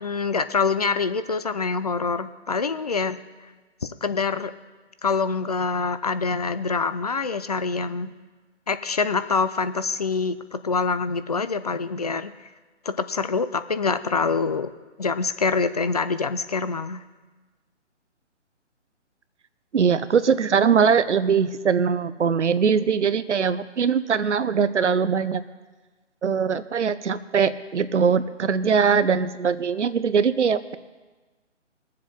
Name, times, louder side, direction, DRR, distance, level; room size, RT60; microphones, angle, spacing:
voice 1, 0.0-3.2 4.0-4.5 5.0-8.1 8.7-12.3 12.9-14.7 15.0-17.0, left 4 dB, 35° left, 12 dB, 0.4 m, -25 dB
voice 2, 19.7-25.4 26.2-30.8, right 6 dB, 70° right, 14 dB, 0.9 m, -21 dB
22.0 x 7.4 x 4.3 m, 1.3 s
figure-of-eight pair, 150°, 36 cm